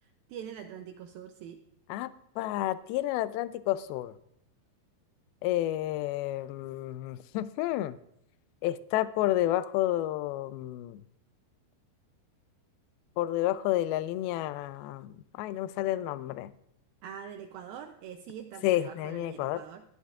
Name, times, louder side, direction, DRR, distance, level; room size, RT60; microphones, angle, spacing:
voice 1, 0.0-1.6 17.0-19.8, right 8 dB, 80° right, 6 dB, 2.2 m, -44 dB
voice 2, 1.9-4.1 5.4-8.0 8.6-11.0 13.2-16.5 18.6-19.6, left 14 dB, 80° left, 14 dB, 2.3 m, -30 dB
15.0 x 13.0 x 2.4 m, 0.73 s
omnidirectional pair, 4.7 m